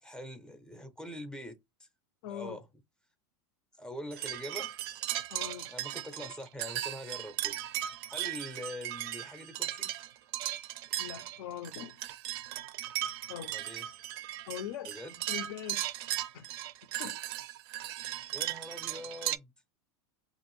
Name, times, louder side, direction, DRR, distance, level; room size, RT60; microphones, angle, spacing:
voice 1, 0.0-1.9 2.3-2.6 3.7-4.8 5.7-7.6 8.1-9.9 13.5-13.9 14.8-15.1 18.3-19.5, left 1 dB, 5° left, 0.5 m, -44 dB
voice 2, 2.2-2.6 5.3-5.7 11.0-12.0 13.3-13.6 14.5-14.9 15.3-15.8 16.3-16.5 17.0-17.2, left 10 dB, 65° left, 0.5 m, -41 dB
sound 1, 4.1-19.4, right 14 dB, 60° right, 0.4 m, -37 dB
2.6 x 2.5 x 3.0 m
supercardioid pair, 145°, 14 cm